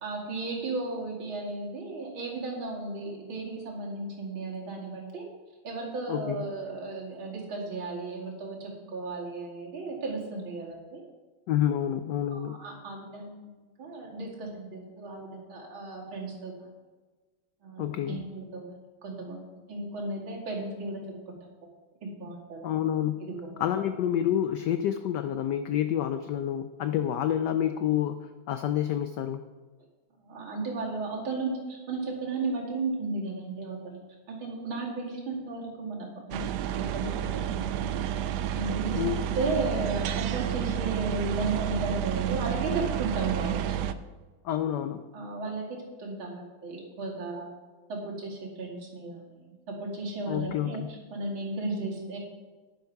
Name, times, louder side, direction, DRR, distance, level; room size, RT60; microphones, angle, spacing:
voice 1, 0.0-5.3 5.6-11.0 11.9-12.0 12.3-13.5 13.8-16.5 17.6-18.6 19.0-21.0 21.3-21.4 22.0-22.7 23.4-23.9 30.2-34.0 34.3-37.5 37.8-38.0 38.5-39.1 39.3-43.9 45.1-47.5 47.9-52.2, right 3 dB, 70° right, -2 dB, 3.1 m, -35 dB
voice 2, 6.1-6.4 11.5-12.6 17.8-18.2 22.6-23.2 23.6-28.2 28.5-29.4 38.9-39.2 44.4-45.0 50.3-50.9, left 10 dB, 80° left, 9 dB, 0.9 m, -28 dB
sound 1, 36.3-43.9, right 10 dB, 85° right, 0.9 m, -30 dB
10.5 x 10.5 x 4.7 m, 1.3 s
omnidirectional pair, 2.3 m